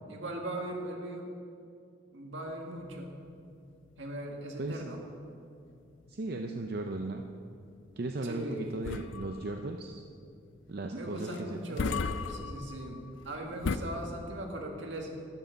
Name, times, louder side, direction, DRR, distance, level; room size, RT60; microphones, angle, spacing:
voice 1, 0.1-1.3 2.1-3.2 4.0-5.0 8.2-8.6 10.9-15.2, right 1 dB, 75° right, 1 dB, 1.9 m, -39 dB
sound 1, 2.5-13.8, left 4 dB, 75° left, 0.5 m, -39 dB
voice 2, 4.6-4.9 6.1-7.2 8.0-10.0 10.7-11.8, right 2 dB, 50° right, 4 dB, 0.5 m, -36 dB
12.5 x 10.5 x 5.2 m, 2.4 s
head